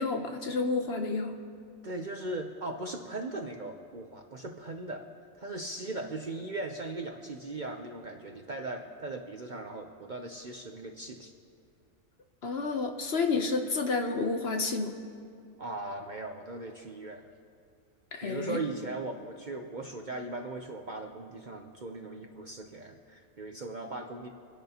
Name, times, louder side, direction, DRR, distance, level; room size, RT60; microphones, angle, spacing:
voice 1, 0.0-1.4 12.4-14.9 18.1-18.6, left 4 dB, 55° left, 5 dB, 0.9 m, -30 dB
voice 2, 1.8-5.1 5.4-11.3 15.6-17.3 18.2-24.3, right 2 dB, 45° right, 4 dB, 0.6 m, -38 dB
27.5 x 10.5 x 2.9 m, 2.3 s
omnidirectional pair, 1.4 m